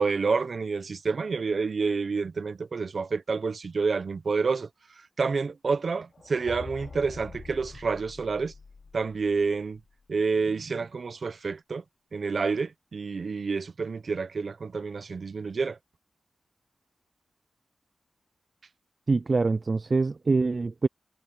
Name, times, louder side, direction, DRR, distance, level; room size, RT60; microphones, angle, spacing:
voice 1, 0.0-4.7 5.0-8.5 8.9-9.8 10.1-11.8 12.1-15.8, right 4 dB, 60° right, 1.0 m, -28 dB
sound 1, 6.1-10.1, left 4 dB, 55° left, 2.8 m, -45 dB
voice 2, 19.1-20.9, right 3 dB, 45° right, 0.4 m, -24 dB
wide cardioid pair, 75°, 0 cm